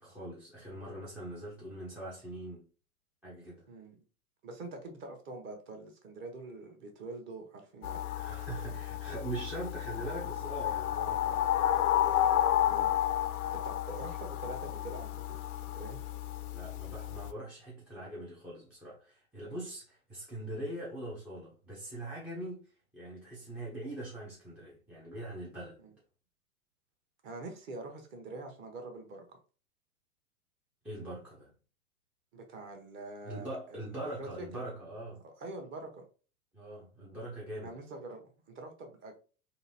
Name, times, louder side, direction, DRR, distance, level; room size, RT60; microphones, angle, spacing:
voice 1, 0.0-2.6 3.2-3.6 8.2-11.5 16.5-25.8 30.8-31.5 33.2-35.2 36.5-37.7, right 1 dB, 5° right, 0.4 m, -42 dB
voice 2, 4.4-8.0 12.6-13.0 13.5-16.0 27.2-29.4 32.3-34.3 35.2-36.0 37.6-39.2, right 2 dB, 25° right, 0.9 m, -45 dB
sound 1, 7.8-17.3, left 11 dB, 75° left, 0.6 m, -31 dB
3.8 x 2.5 x 2.7 m
hypercardioid pair, 115°, 45 cm